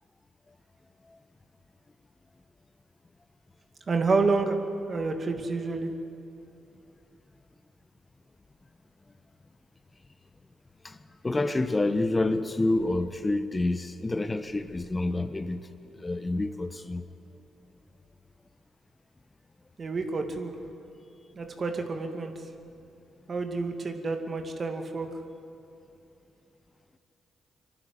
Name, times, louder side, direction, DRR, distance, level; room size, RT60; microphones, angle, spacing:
voice 1, 3.9-4.6 4.9-5.9 19.8-20.5 21.4-22.3 23.3-25.1, right 3 dB, 45° right, 2.3 m, -28 dB
voice 2, 11.2-15.7 16.0-17.0, left 2 dB, 25° left, 1.1 m, -28 dB
25.0 x 12.0 x 9.9 m
hypercardioid pair, 45°, 0 cm